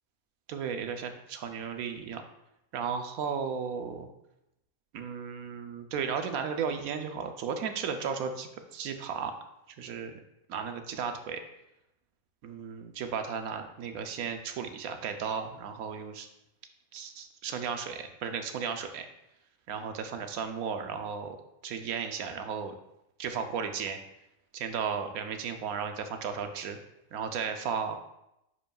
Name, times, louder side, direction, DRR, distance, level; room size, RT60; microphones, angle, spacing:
voice 1, 0.5-2.2 2.7-4.1 4.9-9.3 9.8-10.2 10.5-11.4 12.4-16.3 16.9-19.1 19.7-21.4 21.6-22.7 23.2-24.0 24.5-26.8 27.1-28.0, right 6 dB, 85° right, 7 dB, 1.2 m, -34 dB
9.9 x 5.2 x 2.3 m, 0.85 s
omnidirectional pair, 1.5 m